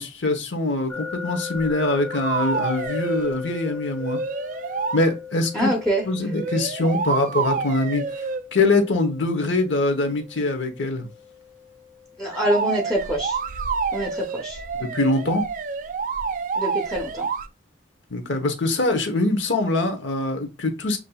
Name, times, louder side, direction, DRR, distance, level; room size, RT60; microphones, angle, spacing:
voice 1, 0.0-4.2 4.9-5.7 6.0-8.0 8.5-11.1 14.7-15.4 18.1-21.0, left 2 dB, 70° left, 1.0 m, -23 dB
sound 1, 0.9-13.8, left 6 dB, 20° left, 1.2 m, -38 dB
sound 2, 1.6-1.7 2.1-3.4 4.0-5.0 6.3-8.4 12.3-17.5, right 5 dB, 40° right, 0.3 m, -28 dB
voice 2, 5.5-6.0 12.2-13.4 13.9-14.6 16.6-17.3, right 1 dB, 5° left, 0.7 m, -25 dB
7.3 x 2.6 x 2.3 m
head